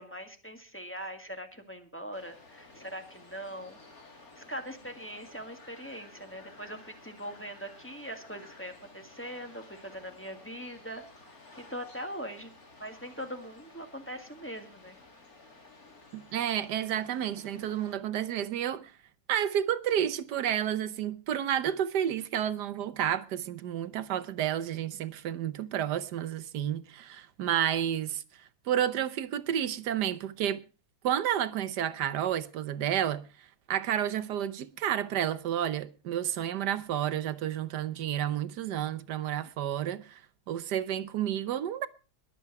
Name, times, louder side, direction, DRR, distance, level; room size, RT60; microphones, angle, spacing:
voice 1, 0.0-3.8 4.3-11.0 11.3-11.4 11.7-12.5 12.8-15.0, equal, 10° left, 1.6 m, -41 dB
sound 1, 2.1-18.0, left 3 dB, 60° left, 3.3 m, -54 dB
voice 2, 16.1-18.9 19.3-28.2 28.7-30.6 31.0-40.2 40.5-41.9, right 10 dB, 85° right, 1.4 m, -31 dB
21.5 x 8.0 x 4.7 m
omnidirectional pair, 1.7 m